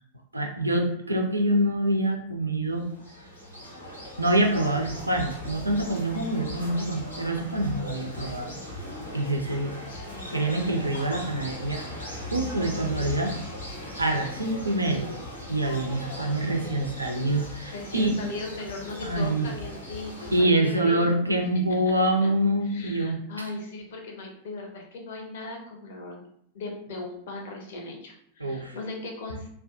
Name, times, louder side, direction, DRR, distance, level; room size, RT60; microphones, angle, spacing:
voice 1, 0.3-2.8 4.2-8.5 9.1-9.8 10.3-11.8 12.3-13.3 14.0-15.2 15.5-18.1 19.0-19.5 20.3-23.2 28.4-28.8, right 1 dB, 85° right, 3 dB, 0.4 m, -25 dB
sound 1, 2.8-20.4, left 1 dB, 80° left, 0.8 m, -39 dB
voice 2, 9.9-10.3 17.7-21.1 21.7-21.8 22.2-22.3 22.6-26.2 26.5-29.5, left 2 dB, 55° left, 1 dB, 0.6 m, -38 dB
2.4 x 2.2 x 2.4 m, 0.69 s
figure-of-eight pair, 90°, 0 cm